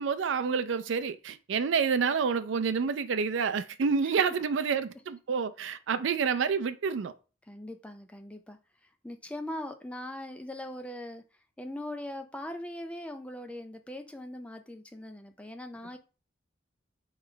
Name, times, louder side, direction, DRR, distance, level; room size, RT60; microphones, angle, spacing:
voice 1, 0.0-7.1, right 6 dB, 75° right, 0.4 m, -28 dB
voice 2, 7.5-11.2 11.6-16.0, left 1 dB, 5° left, 0.4 m, -41 dB
4.5 x 3.1 x 3.8 m
head